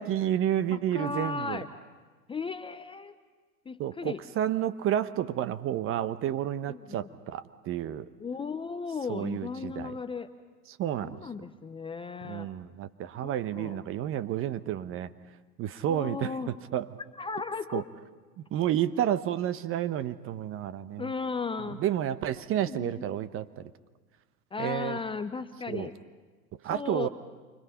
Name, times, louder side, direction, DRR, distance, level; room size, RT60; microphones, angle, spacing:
voice 1, 0.0-1.6 3.8-8.1 9.1-9.9 10.8-11.2 12.2-15.1 15.6-16.9 17.7-17.8 18.4-21.1 21.8-23.6 24.6-25.0 25.7-25.9 26.6-27.1, right 11 dB, 30° right, 13 dB, 0.9 m, -30 dB
voice 2, 0.7-1.7 2.3-3.1 3.7-4.2 6.7-7.1 8.2-10.3 11.0-12.5 13.2-13.8 15.9-16.5 17.2-17.8 21.0-21.8 22.6-23.1 24.5-25.9 26.7-27.1, left 4 dB, 10° left, 10 dB, 0.7 m, -36 dB
29.0 x 25.0 x 5.7 m, 1.4 s
hypercardioid pair, 105°, 46 cm